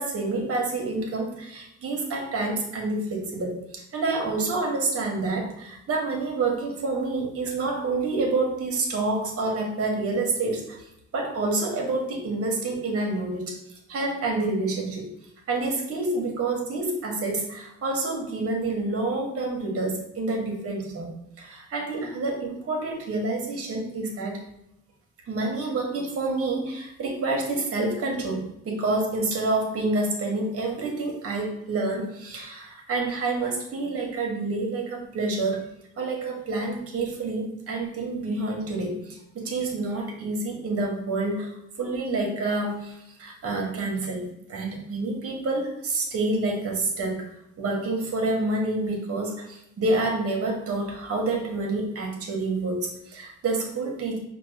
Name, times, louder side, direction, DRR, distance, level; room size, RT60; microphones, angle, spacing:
voice 1, 0.0-10.9 11.1-15.1 15.5-24.4 25.3-35.6 36.0-47.3 47.6-54.2, right 2 dB, 50° right, 1 dB, 1.3 m, -28 dB
5.1 x 2.3 x 3.3 m, 0.81 s
cardioid pair, 90°, 29 cm